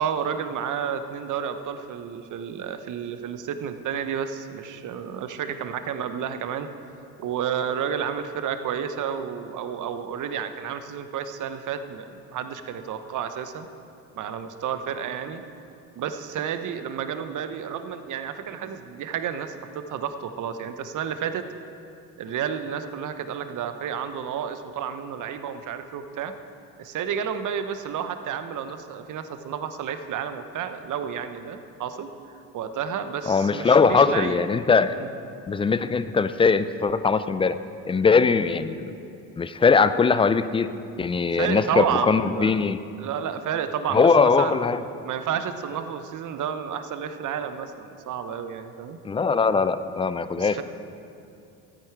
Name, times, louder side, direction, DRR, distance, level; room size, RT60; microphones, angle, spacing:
voice 1, 0.0-6.7 7.2-13.7 14.1-15.4 16.0-21.4 22.2-26.3 26.8-32.1 32.5-34.4 34.9-35.1 38.2-38.3 41.3-42.6 43.0-44.6 45.0-49.0 50.4-50.6, right 8 dB, 50° right, 9 dB, 0.9 m, -31 dB
voice 2, 33.3-34.9 35.5-37.6 37.9-39.0 39.4-40.7 41.0-42.8 43.9-44.8 49.0-50.6, left 5 dB, 15° left, 13 dB, 0.3 m, -21 dB
13.0 x 8.8 x 4.6 m, 2.6 s
hypercardioid pair, 70°, 40 cm